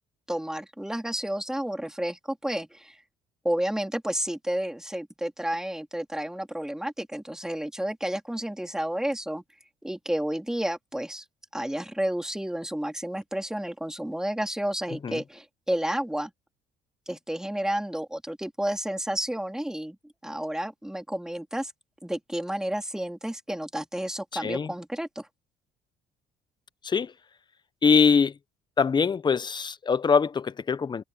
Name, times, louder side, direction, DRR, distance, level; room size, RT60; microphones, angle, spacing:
voice 1, 0.3-3.0 3.4-9.4 9.8-11.2 11.5-16.3 17.1-20.0 20.2-21.7 22.0-25.3, right 1 dB, 5° right, 3.3 m, -31 dB
voice 2, 24.3-24.7 26.8-27.1 27.8-28.4 28.8-31.0, left 5 dB, 25° left, 0.7 m, -23 dB
cardioid pair, 110°, 17 cm